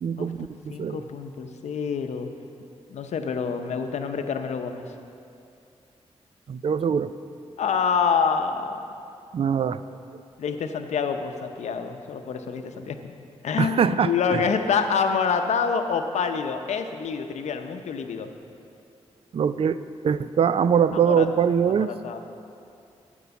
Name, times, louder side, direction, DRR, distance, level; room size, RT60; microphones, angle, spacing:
voice 1, 0.0-1.0 6.5-7.1 9.3-9.8 13.6-14.5 19.3-19.8 20.0-21.9, right 7 dB, 55° right, 14 dB, 0.4 m, -23 dB
voice 2, 0.7-2.3 2.9-4.9 7.6-8.7 10.4-13.0 13.4-18.3 20.9-21.3 21.7-22.2, left 6 dB, 85° left, 7 dB, 0.6 m, -27 dB
12.5 x 4.5 x 7.0 m, 2.6 s
cardioid pair, 65°, 11 cm